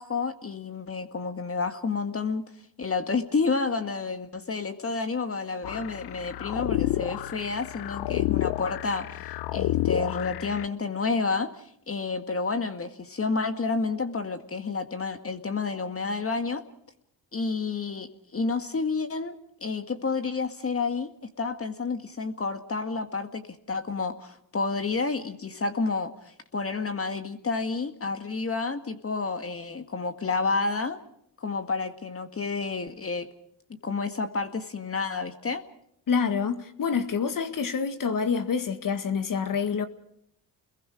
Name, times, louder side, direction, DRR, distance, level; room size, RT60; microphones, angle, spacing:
voice 1, 0.0-2.4 2.8-11.5 11.9-16.6 17.3-18.1 18.3-21.1 21.4-23.4 23.7-31.0 31.4-33.3 33.8-35.6, left 4 dB, 35° left, 1.9 m, -30 dB
sound 1, 5.6-10.7, left 15 dB, 70° left, 0.8 m, -30 dB
voice 2, 36.1-39.9, left 6 dB, 50° left, 1.9 m, -27 dB
29.5 x 22.0 x 5.0 m
supercardioid pair, 65°, 41 cm